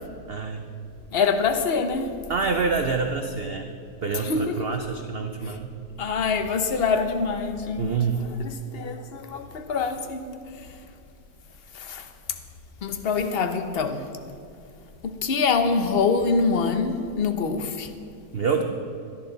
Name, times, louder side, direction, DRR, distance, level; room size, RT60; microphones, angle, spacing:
voice 1, 0.3-0.7 2.3-3.7 4.0-5.7 7.8-8.3 18.3-18.6, right 5 dB, 65° right, 5 dB, 0.6 m, -26 dB
voice 2, 1.1-2.1 4.1-4.7 5.4-5.6 6.0-10.4 11.7-12.1 12.8-14.1 15.1-17.9, left 4 dB, 45° left, 7 dB, 0.9 m, -25 dB
17.0 x 12.0 x 4.0 m, 2.5 s
omnidirectional pair, 1.9 m